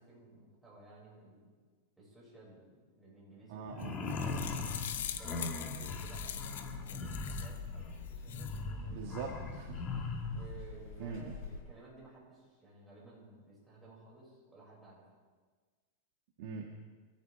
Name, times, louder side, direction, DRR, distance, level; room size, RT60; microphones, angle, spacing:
voice 1, 0.0-1.5 2.0-4.4 5.2-9.1 10.3-15.1, right 2 dB, 10° right, -6 dB, 6.7 m, -56 dB
voice 2, 3.5-3.9 8.9-10.1 11.0-11.3 16.4-16.7, right 5 dB, 55° right, 1 dB, 1.9 m, -42 dB
sound 1, 3.7-10.5, left 3 dB, 25° left, 2.0 m, -40 dB
sound 2, 3.8-7.6 8.1-8.6, left 9 dB, 85° left, 1.3 m, -43 dB
sound 3, 4.1-11.6, left 4 dB, 45° left, 5.3 m, -47 dB
28.5 x 13.5 x 3.7 m, 1.5 s
supercardioid pair, 155°, 0 cm